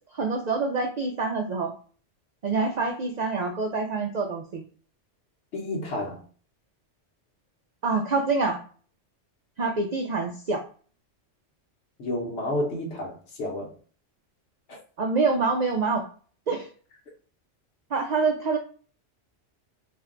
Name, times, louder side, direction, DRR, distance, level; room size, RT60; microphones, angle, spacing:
voice 1, 0.1-1.7 2.4-4.6 7.8-8.6 9.6-10.6 15.0-16.1 16.5-16.7 17.9-18.6, right 4 dB, 75° right, 0.4 m, -26 dB
voice 2, 5.5-6.2 12.0-13.7 14.7-14.8, left 1 dB, 65° left, 1.0 m, -30 dB
2.6 x 2.2 x 3.6 m
omnidirectional pair, 1.3 m